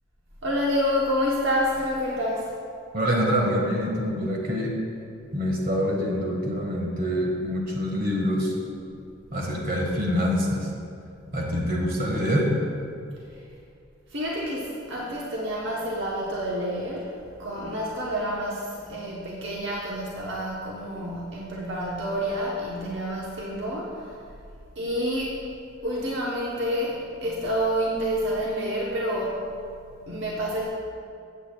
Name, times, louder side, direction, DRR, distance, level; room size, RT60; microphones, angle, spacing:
voice 1, 0.4-2.5 14.1-17.1 17.4-24.2 24.7-25.4 25.8-29.4 30.1-30.7, equal, 70° right, -5 dB, 1.1 m, -28 dB
voice 2, 2.9-4.7 5.3-8.6 9.3-10.7 11.3-12.5, equal, 45° right, -1 dB, 1.7 m, -25 dB
15.5 x 8.0 x 2.4 m, 2.4 s
head